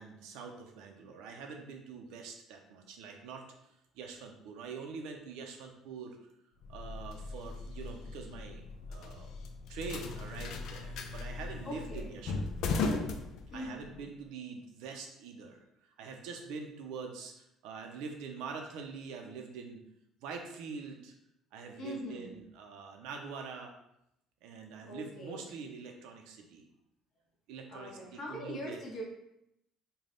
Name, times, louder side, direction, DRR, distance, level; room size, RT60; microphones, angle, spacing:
voice 1, 0.0-3.5 3.9-6.2 6.7-8.6 8.9-9.3 9.7-12.8 13.5-15.6 16.0-19.8 20.2-21.1 21.5-23.7 24.4-26.7 27.5-28.8, right 5 dB, 85° right, 3 dB, 0.5 m, -44 dB
sound 1, 6.6-14.0, left 3 dB, 65° left, 0.4 m, -38 dB
voice 2, 11.6-12.0 13.5-14.0 21.8-22.3 24.8-25.4 27.7-29.0, left 1 dB, 40° left, -3 dB, 1.2 m, -42 dB
3.4 x 2.2 x 3.8 m, 0.81 s
cardioid pair, 135°, 0 cm